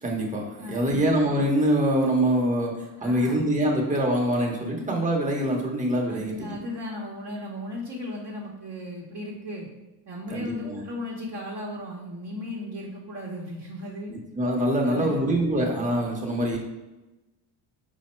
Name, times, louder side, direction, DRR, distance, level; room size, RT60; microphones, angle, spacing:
voice 1, 0.0-6.6 10.3-10.8 14.1-16.6, right 1 dB, 15° right, 0 dB, 0.9 m, -24 dB
voice 2, 0.6-1.0 3.0-3.4 6.0-9.7 10.1-14.1 14.8-15.3, left 1 dB, 40° right, -4 dB, 0.9 m, -36 dB
5.0 x 2.1 x 4.3 m, 1.0 s
cardioid pair, 105°, 44 cm